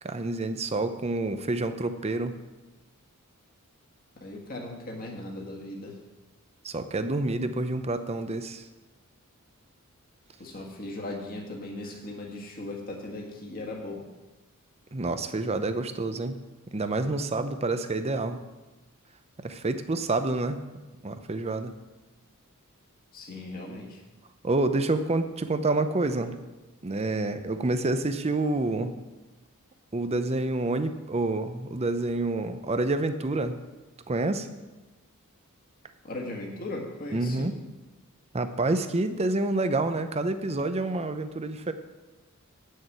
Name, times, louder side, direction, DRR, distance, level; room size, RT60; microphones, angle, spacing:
voice 1, 0.0-2.4 6.6-8.6 14.9-16.4 16.7-18.4 19.4-20.6 21.0-21.7 24.4-26.4 26.8-28.9 29.9-33.6 34.1-34.5 37.1-37.5 38.3-41.7, right 2 dB, 30° right, 9 dB, 0.7 m, -28 dB
voice 2, 4.2-6.0 10.4-14.0 23.1-24.0 36.0-37.5, left 2 dB, 40° left, -1 dB, 1.6 m, -38 dB
9.0 x 6.5 x 7.9 m, 1.1 s
head